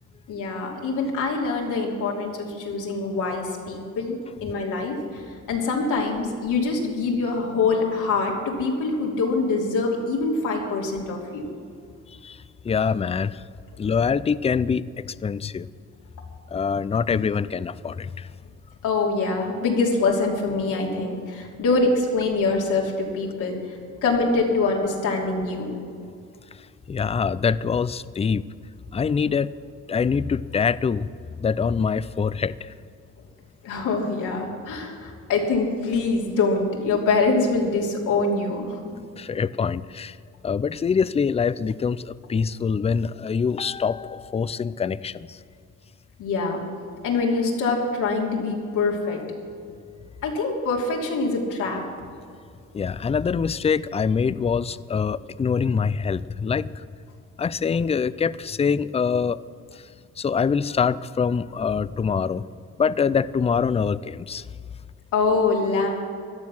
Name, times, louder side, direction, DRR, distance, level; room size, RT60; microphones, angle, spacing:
voice 1, 0.3-4.2 4.4-5.2 5.5-11.5 17.1-17.2 18.8-23.5 24.0-25.8 33.6-38.8 46.2-46.6 47.0-49.2 50.2-51.8 65.1-65.9, left 3 dB, 85° left, -2 dB, 3.1 m, -24 dB
voice 2, 12.6-13.4 13.8-15.7 16.5-18.3 26.9-28.5 28.9-29.5 29.9-31.1 31.4-32.7 39.2-40.2 40.4-45.4 52.7-56.8 57.4-59.4 60.2-62.4 62.8-64.4, left 6 dB, 20° left, 18 dB, 0.4 m, -24 dB
17.0 x 11.5 x 6.2 m, 2.3 s
cardioid pair, 90°, 30 cm